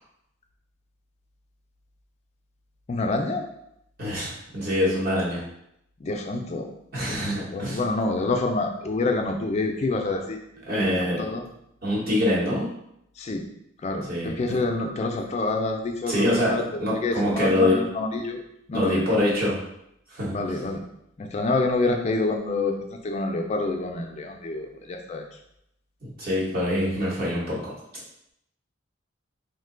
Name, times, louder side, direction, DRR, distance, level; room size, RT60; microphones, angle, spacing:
voice 1, 2.9-3.4 6.0-6.7 7.0-10.4 10.8-11.4 13.2-13.4 13.8-16.6 17.0-18.4 18.7-19.2 20.3-20.8 21.2-22.8 23.0-25.2, left 2 dB, 35° left, 3 dB, 0.3 m, -27 dB
voice 2, 4.0-5.4 6.9-7.8 10.6-11.2 11.8-12.7 14.1-14.6 16.1-17.8 18.7-19.6 20.1-20.6 26.0-27.7, left 1 dB, 45° right, -6 dB, 1.0 m, -25 dB
2.6 x 2.2 x 3.7 m, 0.78 s
head